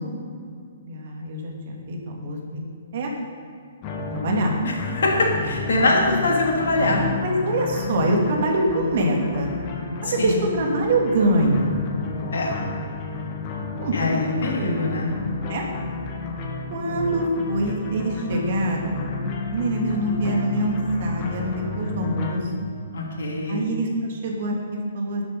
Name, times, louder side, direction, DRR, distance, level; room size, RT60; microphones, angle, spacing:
voice 1, 0.8-2.7 2.9-3.1 4.1-4.5 7.2-9.5 10.0-11.8 13.8-14.3 15.5-15.7 16.7-19.1 19.5-22.5 23.5-25.2, right 1 dB, 55° right, 0 dB, 2.7 m, -24 dB
sound 1, 3.8-22.3, left 3 dB, 35° left, 2.1 m, -31 dB
voice 2, 4.6-7.0 10.0-10.3 12.3-12.5 13.9-15.1 22.9-23.6, left 2 dB, 65° left, -1 dB, 3.1 m, -23 dB
11.5 x 9.3 x 5.6 m, 2.2 s
figure-of-eight pair, 125°, 0 cm